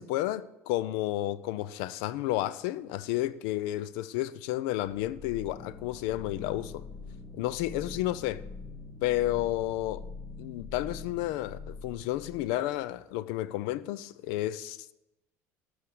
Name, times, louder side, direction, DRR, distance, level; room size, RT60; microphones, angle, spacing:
voice 1, 0.0-6.8 7.3-8.4 9.0-10.0 10.4-14.9, left 15 dB, 70° left, 0.5 m, -31 dB
sound 1, 4.9-12.7, left 4 dB, 35° left, 1.6 m, -44 dB
13.0 x 6.5 x 8.2 m
hypercardioid pair, 65°, 8 cm